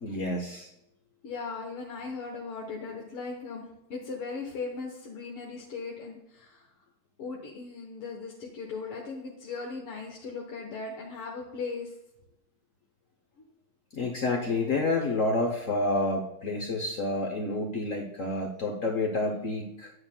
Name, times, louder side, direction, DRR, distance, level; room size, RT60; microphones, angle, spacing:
voice 1, 0.0-0.7 13.9-19.9, left 2 dB, 60° left, 0 dB, 0.8 m, -29 dB
voice 2, 1.2-6.6 7.2-11.9, left 4 dB, 85° left, -2 dB, 2.0 m, -38 dB
9.5 x 8.9 x 2.2 m, 0.85 s
omnidirectional pair, 2.4 m